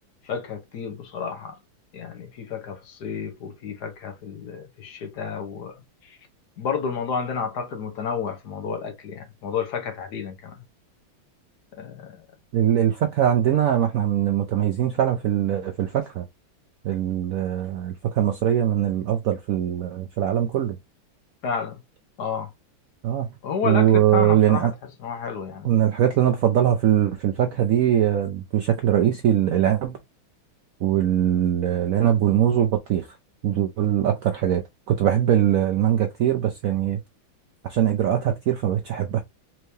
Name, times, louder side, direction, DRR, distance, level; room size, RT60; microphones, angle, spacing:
voice 1, 0.2-1.6 1.9-6.2 6.6-10.5 11.7-12.2 21.4-21.8 22.2-22.5 23.4-24.7 25.0-25.8, left 6 dB, 60° left, 1.4 m, -31 dB
voice 2, 12.5-16.2 16.8-20.8 23.0-23.3 23.6-24.7 25.6-30.0 30.8-33.1 33.4-37.0 37.6-39.2, right 10 dB, 80° right, 0.7 m, -21 dB
4.5 x 3.2 x 2.7 m
omnidirectional pair, 2.1 m